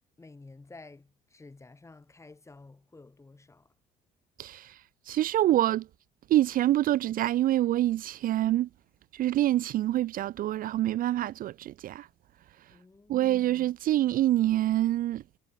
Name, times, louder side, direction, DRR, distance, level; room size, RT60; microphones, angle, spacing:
voice 1, 0.2-3.7 12.7-13.5, left 3 dB, 15° left, 3.9 m, -52 dB
voice 2, 4.4-5.9 6.3-8.7 9.1-12.1 13.1-15.2, right 14 dB, 55° right, 0.5 m, -26 dB
cardioid pair, 110°, 17 cm